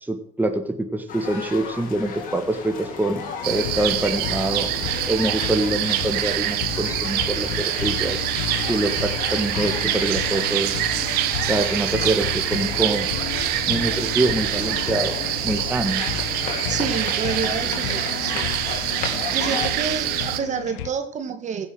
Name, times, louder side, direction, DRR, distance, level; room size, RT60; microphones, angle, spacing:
voice 1, 0.0-4.7 5.1-10.8 11.5-13.1 13.7-15.2 15.4-16.0, right 2 dB, 10° right, 6 dB, 1.5 m, -25 dB
sound 1, 1.1-19.7, left 6 dB, 55° left, 3.4 m, -35 dB
sound 2, 3.4-20.4, right 13 dB, 70° right, 1.2 m, -25 dB
sound 3, 3.5-20.9, left 13 dB, 80° left, 0.8 m, -33 dB
voice 2, 16.7-18.5 19.3-21.7, right 6 dB, 45° right, 8 dB, 2.1 m, -28 dB
15.5 x 7.1 x 6.4 m, 0.70 s
hypercardioid pair, 70°, 17 cm